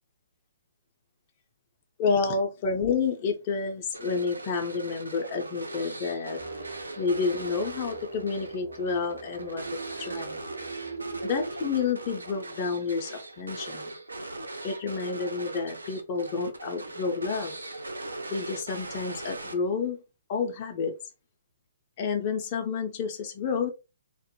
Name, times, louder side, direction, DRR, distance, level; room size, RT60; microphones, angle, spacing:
voice 1, 2.0-6.4 7.0-10.4 11.2-13.9 14.6-17.5 18.3-20.0 20.3-21.0 22.0-23.7, left 5 dB, 35° left, 0.4 m, -29 dB
sound 1, 3.9-19.9, right 2 dB, 85° right, 0.4 m, -40 dB
sound 2, 6.4-11.9, right 4 dB, 20° right, 0.6 m, -41 dB
2.2 x 2.0 x 2.8 m
figure-of-eight pair, 130°, 0 cm